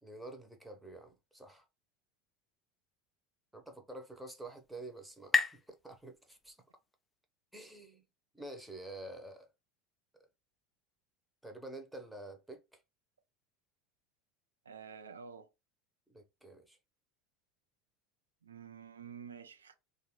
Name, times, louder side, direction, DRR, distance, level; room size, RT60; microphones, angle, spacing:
voice 1, 0.0-1.6 3.5-6.6 7.5-8.0 8.3-9.5 11.4-12.8 16.1-16.8, right 2 dB, 5° right, 0.8 m, -48 dB
sound 1, 3.9-7.2, left 5 dB, 20° left, 0.4 m, -38 dB
voice 2, 14.7-15.5 18.4-19.7, right 7 dB, 80° right, 0.5 m, -49 dB
3.3 x 2.4 x 2.9 m
figure-of-eight pair, 75°, 0 cm